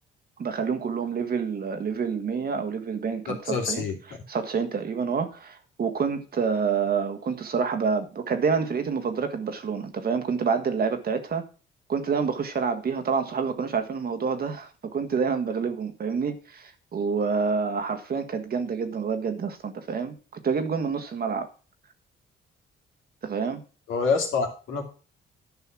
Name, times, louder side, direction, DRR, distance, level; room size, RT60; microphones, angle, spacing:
voice 1, 0.4-3.8 4.3-11.4 11.9-21.5 23.2-23.6, right 5 dB, 50° right, 7 dB, 1.5 m, -28 dB
voice 2, 3.5-3.9 23.9-24.8, left 4 dB, 80° left, 1 dB, 2.8 m, -26 dB
11.0 x 5.6 x 6.1 m, 0.37 s
cardioid pair, 90°, 20 cm